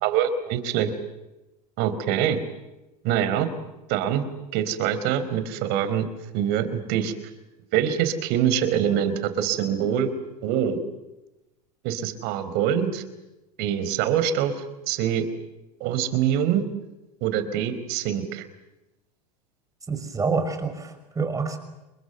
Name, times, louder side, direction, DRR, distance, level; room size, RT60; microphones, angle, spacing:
voice 1, 0.0-0.9 1.8-2.4 3.0-3.5 3.9-4.2 4.5-6.0 6.3-7.1 7.7-10.1 10.4-10.8 11.8-13.0 13.6-14.5 14.9-15.2 15.8-16.6 17.2-18.4, right 9 dB, 55° right, 12 dB, 4.4 m, -24 dB
voice 2, 19.9-21.6, right 4 dB, 15° right, 8 dB, 5.9 m, -27 dB
29.0 x 22.0 x 8.2 m, 0.98 s
hypercardioid pair, 110°, 20 cm